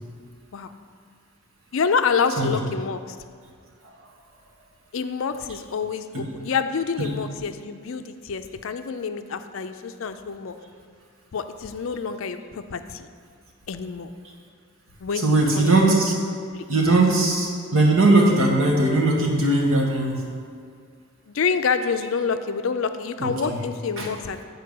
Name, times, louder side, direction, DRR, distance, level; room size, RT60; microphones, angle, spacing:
voice 1, 1.7-3.2 4.9-10.6 11.3-13.1 13.7-14.1 15.0-15.7 16.4-17.0 21.3-24.4, left 5 dB, 65° left, 9 dB, 0.4 m, -27 dB
voice 2, 15.1-16.1 16.7-20.2 23.2-23.6 24.0-24.1, right 2 dB, 65° right, -1 dB, 1.5 m, -20 dB
8.4 x 4.5 x 6.6 m, 2.1 s
head